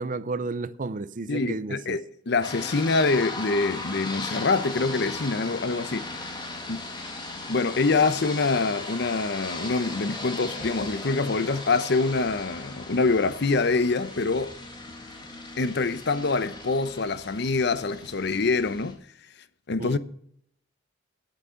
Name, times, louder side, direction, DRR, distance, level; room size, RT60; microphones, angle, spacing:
voice 1, 0.0-2.0 19.8-20.0, right 3 dB, 45° right, 0.6 m, -32 dB
voice 2, 1.3-6.3 6.7-6.9 7.5-14.6 15.6-19.0 19.7-20.0, left 3 dB, 65° left, 0.8 m, -25 dB
sound 1, 2.4-18.9, left 2 dB, 25° left, 2.4 m, -37 dB
9.6 x 8.7 x 6.4 m
head